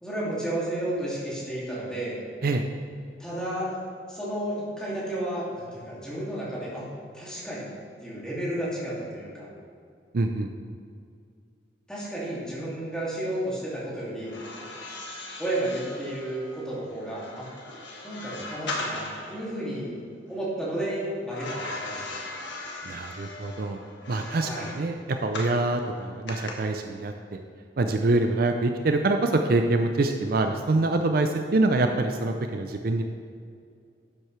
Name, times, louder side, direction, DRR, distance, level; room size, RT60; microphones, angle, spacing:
voice 1, 0.0-2.2 3.2-3.8 4.1-6.9 7.1-7.7 8.0-9.5 11.9-14.4 15.4-17.5 18.0-20.0 20.3-22.3 24.4-24.7, right 1 dB, 5° left, -8 dB, 2.4 m, -32 dB
voice 2, 10.1-10.5 22.9-23.8 24.1-27.1 27.8-33.0, right 2 dB, 55° right, 5 dB, 0.5 m, -25 dB
sound 1, 14.2-19.4 21.3-25.6 26.3-26.5, left 2 dB, 75° left, 1.4 m, -38 dB
11.0 x 7.7 x 3.2 m, 2.3 s
head